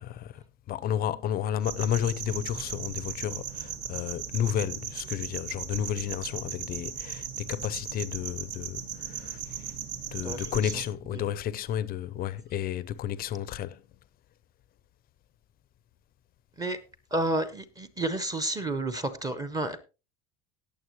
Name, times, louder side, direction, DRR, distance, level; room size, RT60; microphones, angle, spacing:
voice 1, 0.0-9.8 10.1-13.9, left 10 dB, 30° left, 0.5 m, -32 dB
sound 1, 1.6-10.8, right 8 dB, 70° right, 2.1 m, -37 dB
voice 2, 10.2-10.7 11.1-11.2 16.6-16.8 17.1-19.8, right 2 dB, 10° right, 0.7 m, -31 dB
18.5 x 7.0 x 3.0 m
cardioid pair, 180°, 30 cm